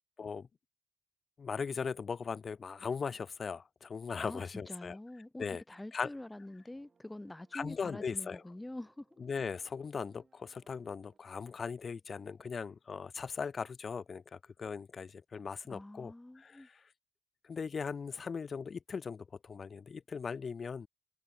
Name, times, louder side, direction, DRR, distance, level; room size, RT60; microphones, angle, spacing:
voice 1, 0.2-0.5 1.4-5.0 5.4-5.6 5.9-6.1 7.5-8.4 9.2-16.8 17.4-20.9, left 5 dB, 40° left, 0.3 m, -39 dB
voice 2, 4.2-9.1 15.7-16.7, left 1 dB, 10° left, 0.7 m, -46 dB
sound 1, 6.1-11.2, right 5 dB, 35° right, 7.6 m, -71 dB
cardioid pair, 90°, 0 cm